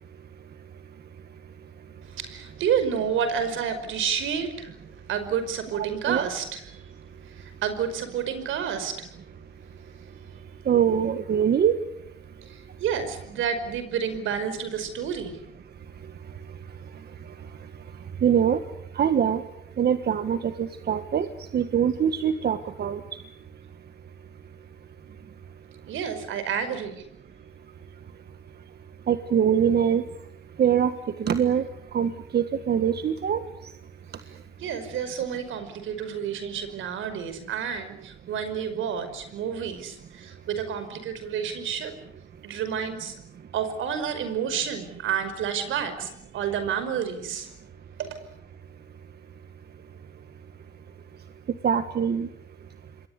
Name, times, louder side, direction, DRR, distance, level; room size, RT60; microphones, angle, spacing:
voice 1, 2.0-9.1 9.7-10.4 12.4-15.4 25.9-27.0 34.6-41.9 42.4-43.1 43.5-47.5 48.0-48.1, right 7 dB, 80° right, 5.3 m, -30 dB
voice 2, 5.8-6.2 10.7-11.7 18.2-18.6 19.0-19.4 19.8-21.3 21.5-23.0 29.1-30.0 30.6-30.9 31.2-31.6 31.9-33.4 51.6-52.3, right 8 dB, 55° right, 1.6 m, -23 dB
27.0 x 22.0 x 8.3 m
cardioid pair, 90°, 20 cm